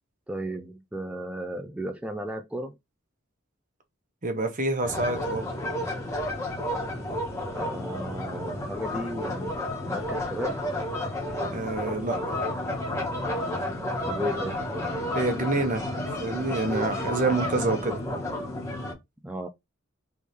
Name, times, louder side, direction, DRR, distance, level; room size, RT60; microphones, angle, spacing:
voice 1, 0.3-2.7 7.5-10.6 14.1-14.7 19.2-19.5, equal, 5° right, 0.4 m, -35 dB
voice 2, 4.2-5.5 11.4-12.2 15.1-18.0, right 2 dB, 40° right, 1.0 m, -27 dB
sound 1, 4.8-18.9, left 1 dB, 15° left, 1.3 m, -31 dB
3.5 x 3.2 x 4.2 m
head